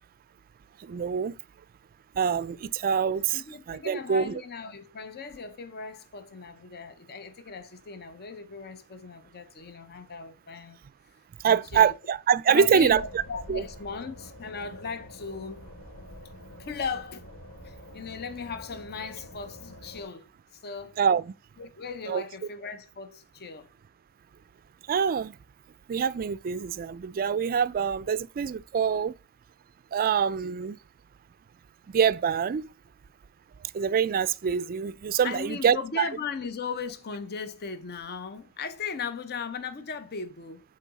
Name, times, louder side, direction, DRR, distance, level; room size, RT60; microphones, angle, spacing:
voice 1, 0.8-1.4 2.1-4.4 11.4-13.2 13.5-13.6 21.0-21.3 22.1-22.2 24.9-25.4 25.9-29.2 29.9-30.8 31.9-32.7 33.6-36.1, right 7 dB, 40° right, 0.3 m, -25 dB
voice 2, 3.3-10.8 11.4-11.9 12.5-15.6 16.6-17.3 17.6-20.2 20.6-21.0 21.6-23.7 35.2-40.6, left 5 dB, 45° left, 0.6 m, -37 dB
sound 1, 12.8-20.0, equal, 80° left, 3.0 m, -46 dB
8.3 x 3.8 x 4.0 m
head